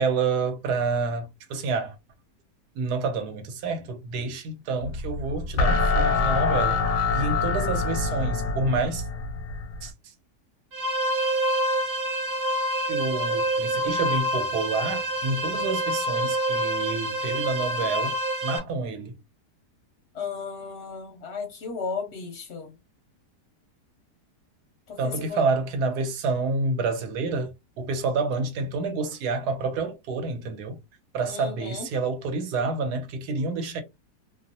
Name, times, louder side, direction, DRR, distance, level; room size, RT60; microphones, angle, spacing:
voice 1, 0.0-2.0 2.7-6.8 7.1-9.1 9.8-10.1 12.8-19.1 25.0-30.8 31.1-33.8, right 4 dB, 80° right, 1.2 m, -28 dB
sound 1, 4.8-9.9, left 4 dB, 85° left, 1.2 m, -25 dB
sound 2, 10.7-18.6, right 1 dB, 45° right, 0.9 m, -27 dB
voice 2, 20.1-22.8 24.9-25.4 31.3-31.9, left 5 dB, 60° left, 0.7 m, -34 dB
2.8 x 2.0 x 2.6 m
omnidirectional pair, 1.7 m